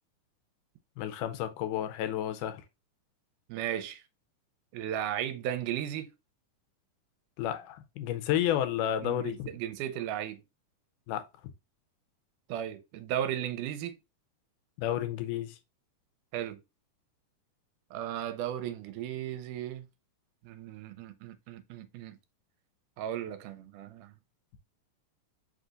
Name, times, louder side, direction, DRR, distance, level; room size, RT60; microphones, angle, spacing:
voice 1, 1.0-2.6 7.4-9.5 11.1-11.2 14.8-15.6, left 11 dB, 85° left, 2.2 m, -31 dB
voice 2, 3.5-4.0 4.7-6.1 9.0-10.4 12.5-14.0 16.3-16.6 17.9-19.9 20.4-22.2 23.0-24.1, right 11 dB, 85° right, 2.1 m, -35 dB
5.0 x 3.9 x 2.4 m
omnidirectional pair, 3.6 m